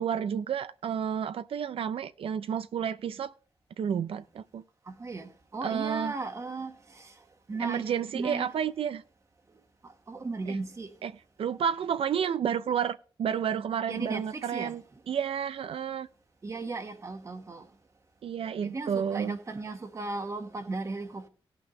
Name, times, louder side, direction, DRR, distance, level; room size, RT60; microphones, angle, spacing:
voice 1, 0.0-3.3 3.8-4.6 5.6-6.1 7.6-9.0 10.5-10.6 11.0-11.1 11.4-14.8 15.1-16.1 18.2-19.4, right 8 dB, 85° right, 0.4 m, -31 dB
voice 2, 4.9-7.1 7.5-8.5 9.8-10.9 13.9-14.8 16.4-17.7 18.6-21.3, right 3 dB, 35° right, 1.2 m, -36 dB
18.0 x 6.0 x 3.8 m
wide cardioid pair, 170°, 9 cm